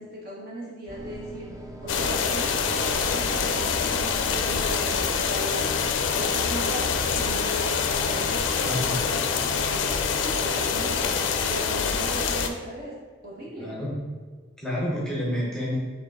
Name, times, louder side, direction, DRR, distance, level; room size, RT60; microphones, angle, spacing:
voice 1, 0.0-5.6 6.0-11.1 11.5-12.9 13.2-13.7, right 1 dB, 50° right, -5 dB, 1.3 m, -38 dB
sound 1, 0.9-6.1, right 1 dB, 15° right, 0.4 m, -42 dB
sound 2, 1.9-12.5, left 5 dB, 80° left, 0.4 m, -25 dB
voice 2, 8.7-9.0 13.6-14.0 14.6-15.8, left 1 dB, 5° left, -5 dB, 0.7 m, -29 dB
4.6 x 3.1 x 3.6 m, 1.5 s
head